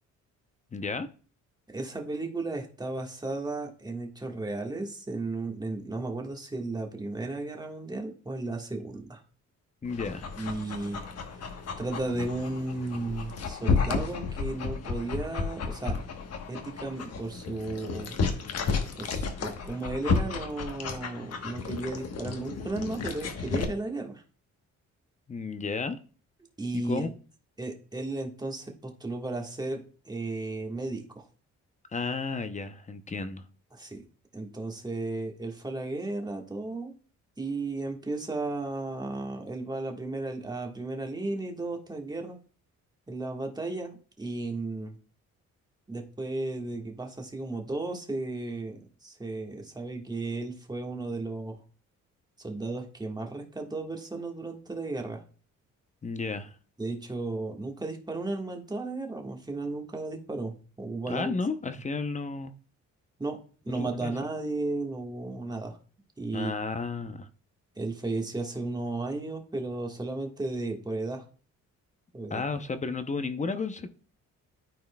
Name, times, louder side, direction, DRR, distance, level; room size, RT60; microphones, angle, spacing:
voice 1, 0.7-1.1 9.8-10.3 25.3-26.0 26.7-27.1 31.9-33.4 56.0-56.5 61.1-62.5 63.7-64.1 66.3-67.3 72.3-73.9, left 4 dB, 25° left, 0.6 m, -32 dB
voice 2, 1.7-9.2 10.4-11.0 11.8-16.0 16.5-18.2 19.0-24.2 26.6-27.1 27.6-31.2 33.7-34.0 34.3-36.9 37.4-42.4 43.1-45.0 45.9-51.6 52.4-55.2 56.8-61.4 63.2-63.4 63.6-65.8 66.2-66.5 67.8-71.2 72.1-72.4, right 2 dB, 15° right, 1.4 m, -34 dB
Dog, 9.8-23.6, left 5 dB, 55° left, 1.2 m, -32 dB
13.0 x 4.3 x 2.2 m
cardioid pair, 90°, 30 cm